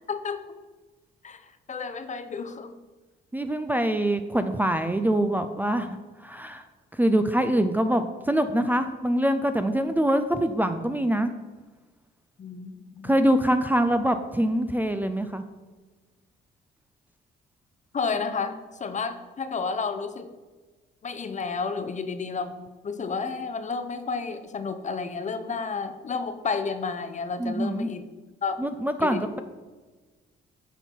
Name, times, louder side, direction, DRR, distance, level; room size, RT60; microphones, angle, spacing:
voice 1, 0.1-0.4 1.2-1.4 1.7-2.7 12.4-13.2 17.9-20.3 21.0-22.6 22.8-28.0 28.4-28.6 29.0-29.4, left 5 dB, 40° left, 9 dB, 0.7 m, -31 dB
voice 2, 3.3-6.6 6.9-11.3 13.0-15.4 27.4-27.9 28.6-29.4, right 1 dB, 10° right, 8 dB, 0.5 m, -24 dB
9.0 x 4.5 x 4.5 m, 1.3 s
cardioid pair, 90°, 20 cm